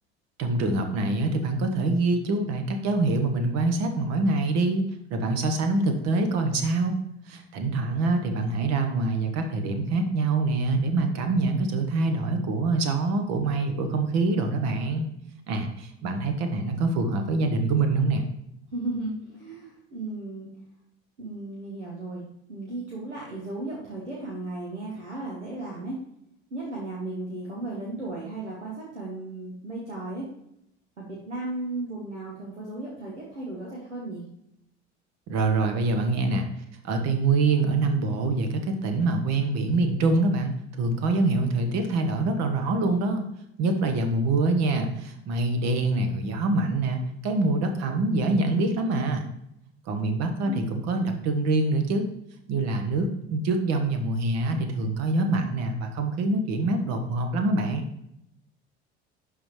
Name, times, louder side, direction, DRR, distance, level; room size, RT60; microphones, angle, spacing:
voice 1, 0.4-6.9 7.3-15.1 15.5-18.2 35.3-36.5 36.8-43.2 43.6-49.2 49.9-52.1 52.5-57.8, right 2 dB, 50° right, 6 dB, 1.3 m, -25 dB
voice 2, 18.7-20.5 21.2-22.2 22.5-26.0 26.5-30.3 31.0-34.2 50.4-50.7, right 2 dB, 85° right, -3 dB, 1.3 m, -35 dB
11.0 x 3.9 x 3.2 m, 0.80 s
figure-of-eight pair, 65°, 34 cm